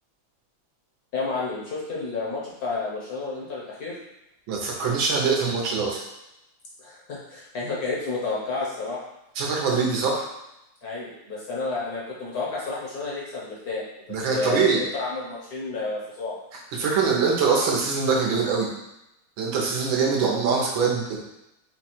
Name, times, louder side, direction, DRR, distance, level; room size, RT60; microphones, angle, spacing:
voice 1, 1.1-4.0 6.8-9.0 10.8-16.4 20.0-20.1, left 3 dB, 55° left, -5 dB, 1.3 m, -31 dB
voice 2, 4.5-6.0 9.3-10.3 14.1-14.8 16.7-18.7 19.4-21.2, right 5 dB, 70° right, -2 dB, 1.6 m, -23 dB
4.6 x 2.4 x 4.3 m, 0.89 s
omnidirectional pair, 2.4 m